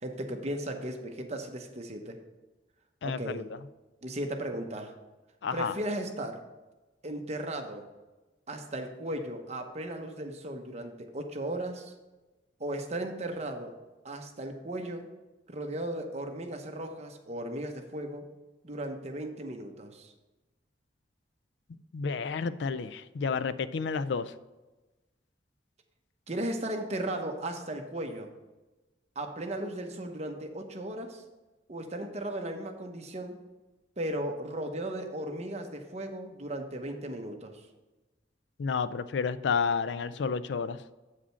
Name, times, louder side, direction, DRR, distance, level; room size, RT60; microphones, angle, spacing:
voice 1, 0.0-2.2 3.0-3.4 4.0-4.9 5.5-6.4 7.0-7.9 8.5-11.9 12.6-13.8 14.0-15.1 15.5-18.3 18.6-20.1 26.3-28.3 29.1-31.2 31.7-33.4 34.0-37.6, right 1 dB, 35° right, 4 dB, 0.9 m, -36 dB
voice 2, 3.0-3.5 5.4-5.7 21.9-24.3 38.6-40.8, left 5 dB, 75° left, 14 dB, 0.4 m, -30 dB
8.3 x 5.0 x 5.7 m, 1.1 s
head